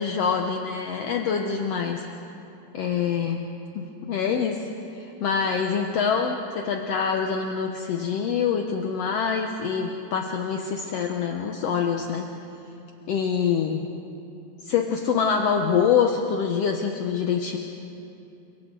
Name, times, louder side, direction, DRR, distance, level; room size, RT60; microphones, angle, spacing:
voice 1, 0.0-2.0 2.7-3.5 3.7-4.5 4.9-12.3 13.1-13.9 14.6-17.6, left 6 dB, 70° left, 2 dB, 1.5 m, -25 dB
29.5 x 25.5 x 3.9 m, 2.8 s
omnidirectional pair, 4.1 m